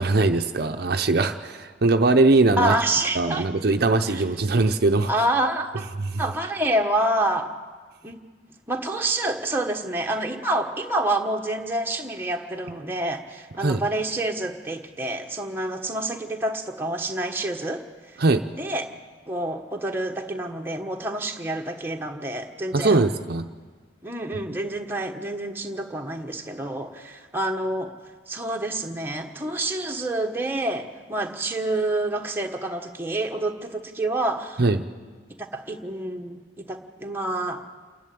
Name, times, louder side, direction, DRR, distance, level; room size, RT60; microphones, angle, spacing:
voice 1, 0.0-2.7 3.1-5.1 6.0-6.2 13.6-13.8 18.2-18.4 22.7-23.5 34.6-34.8, right 3 dB, 55° right, 6 dB, 0.7 m, -21 dB
voice 2, 2.6-3.4 4.1-4.2 5.1-5.9 6.2-7.5 8.0-8.2 8.7-17.8 18.6-18.9 19.3-23.0 24.0-27.9 28.3-34.6 35.4-37.6, right 1 dB, 10° right, 2 dB, 1.3 m, -28 dB
28.0 x 11.0 x 8.6 m, 1.5 s
head